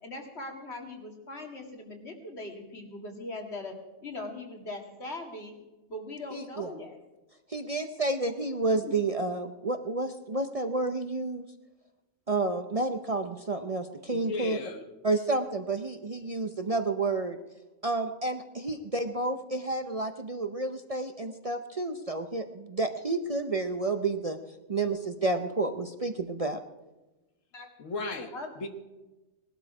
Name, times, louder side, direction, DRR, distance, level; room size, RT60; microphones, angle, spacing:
voice 1, 0.0-5.5 5.9-7.0 8.8-8.9 27.5-27.7 28.3-28.5, left 2 dB, 60° left, 3 dB, 2.4 m, -40 dB
voice 2, 6.3-6.7 7.5-11.5 12.3-14.6 15.0-17.4 17.8-24.4 24.7-26.6, right 3 dB, 35° right, 7 dB, 0.7 m, -30 dB
voice 3, 14.1-14.9 27.8-28.7, left 3 dB, 80° left, 7 dB, 1.6 m, -36 dB
19.0 x 12.0 x 4.8 m, 1.1 s
omnidirectional pair, 1.3 m